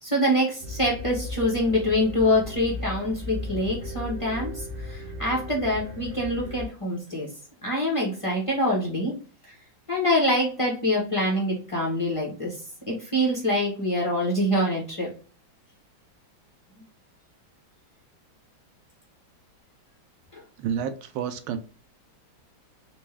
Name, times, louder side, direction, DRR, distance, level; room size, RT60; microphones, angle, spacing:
voice 1, 0.0-7.3 7.6-9.2 9.4-9.5 9.9-12.6 12.9-15.1 20.3-20.4, left 1 dB, 55° left, -3 dB, 0.3 m, -25 dB
sound 1, 0.6-6.7, left 2 dB, 60° right, 1.0 m, -36 dB
voice 2, 20.6-21.6, right 8 dB, 85° right, 9 dB, 1.4 m, -29 dB
4.2 x 2.2 x 3.2 m, 0.39 s
omnidirectional pair, 2.2 m